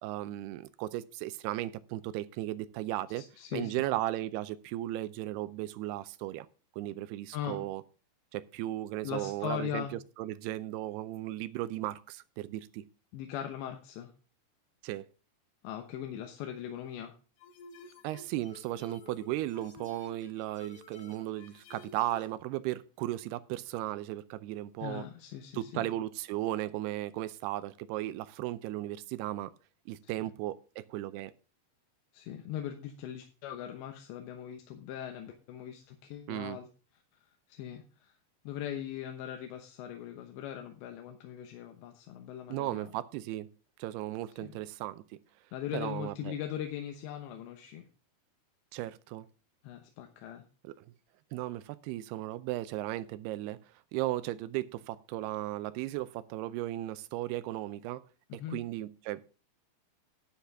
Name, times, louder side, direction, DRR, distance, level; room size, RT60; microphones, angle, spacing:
voice 1, 0.0-3.2 3.5-6.5 6.8-7.8 8.3-9.9 10.2-12.8 14.8-15.1 18.0-25.1 25.5-29.5 29.9-31.3 36.3-36.6 42.5-43.5 43.8-45.0 45.7-46.3 48.7-49.3 50.6-50.9 51.3-53.6 53.9-58.0 58.5-59.3, right 15 dB, 80° right, 2.5 m, -36 dB
voice 2, 3.2-3.9 7.3-7.7 9.0-9.9 13.1-14.1 15.6-17.1 24.8-25.9 30.0-30.1 32.1-36.7 37.5-38.2 38.4-42.9 44.4-44.5 45.5-47.9 49.6-50.4 58.3-58.6, left 10 dB, 90° left, 3.3 m, -40 dB
sound 1, 17.4-22.3, left 3 dB, 55° left, 1.7 m, -53 dB
11.5 x 10.5 x 3.5 m
omnidirectional pair, 4.9 m